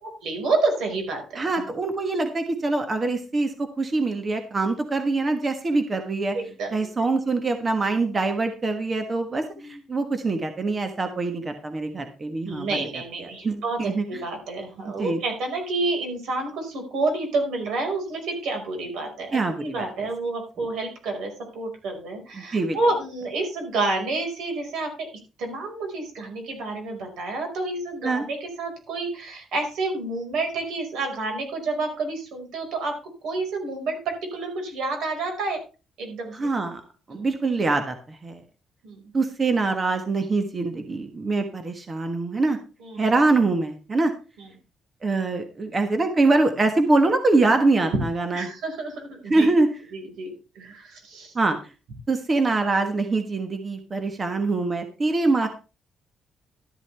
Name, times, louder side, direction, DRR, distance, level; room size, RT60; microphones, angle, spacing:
voice 1, 0.0-1.5 6.3-6.7 9.5-9.8 12.4-13.8 14.1-24.9 25.4-33.0 33.2-35.6 36.0-36.3 37.1-37.2 38.8-39.0 42.8-43.0 44.4-44.5 47.9-48.0 48.3-49.5 49.9-51.3, right 3 dB, 80° right, 3 dB, 5.2 m, -29 dB
voice 2, 1.3-6.4 6.7-12.9 13.2-14.2 14.8-15.2 19.3-20.1 20.6-20.7 22.3-22.8 28.0-28.2 36.3-36.8 37.1-38.4 39.1-42.6 43.0-44.1 45.0-48.5 49.3-49.7 51.3-51.6 52.1-55.5, right 3 dB, 25° right, 6 dB, 1.3 m, -24 dB
12.5 x 11.5 x 3.4 m, 0.32 s
cardioid pair, 155°, 0 cm